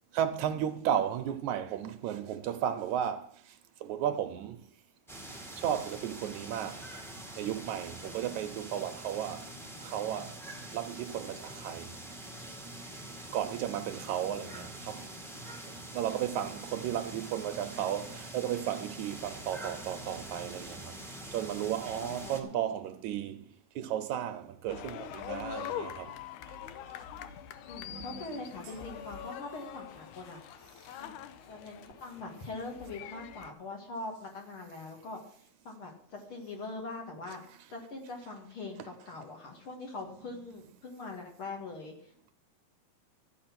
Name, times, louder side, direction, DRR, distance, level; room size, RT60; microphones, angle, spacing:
voice 1, 0.1-4.7 5.6-6.9 7.4-9.5 9.8-10.4 10.7-11.9 13.3-15.1 15.7-21.0 21.3-26.2 27.8-28.2 38.8-38.9, right 10 dB, 75° right, 1.9 m, -34 dB
sound 1, 5.1-22.4, right 1 dB, ahead, 0.6 m, -45 dB
voice 2, 13.8-14.7 22.0-22.7 27.7-30.6 31.0-31.1 31.5-35.2 35.6-37.4 37.7-42.3, left 3 dB, 45° left, 2.4 m, -43 dB
sound 2, 24.7-33.5, left 10 dB, 85° left, 2.2 m, -43 dB
13.0 x 8.2 x 5.9 m
omnidirectional pair, 3.6 m